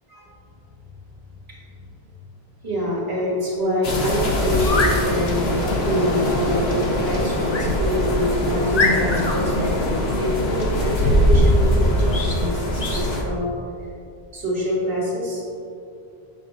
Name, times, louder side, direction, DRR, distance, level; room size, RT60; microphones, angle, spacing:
voice 1, 2.6-13.5 14.3-15.4, equal, 70° right, -5 dB, 2.1 m, -25 dB
sound 1, 3.8-13.2, left 1 dB, 85° left, 1.3 m, -21 dB
sound 2, 4.5-5.0 7.5-7.7 8.2-8.3 8.7-9.4 12.1-12.4 12.8-13.1, left 3 dB, 40° left, 1.0 m, -24 dB
8.1 x 7.2 x 3.1 m, 2.6 s
omnidirectional pair, 1.0 m